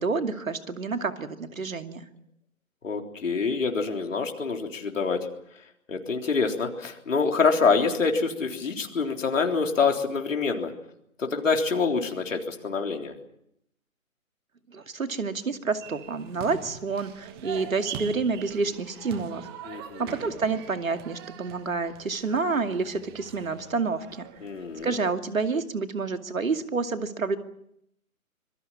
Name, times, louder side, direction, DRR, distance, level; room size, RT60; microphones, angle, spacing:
voice 1, 0.0-2.1 14.7-19.4 20.0-24.3 24.8-27.4, right 4 dB, 70° right, 7 dB, 2.5 m, -29 dB
voice 2, 2.8-5.2 5.9-10.7 11.2-13.1 19.7-20.0 24.4-24.9, left 4 dB, 60° left, 3 dB, 3.7 m, -26 dB
sound 1, 15.8-24.9, right 8 dB, 15° right, 1.3 m, -43 dB
26.0 x 22.5 x 7.3 m, 0.75 s
figure-of-eight pair, 145°, 42 cm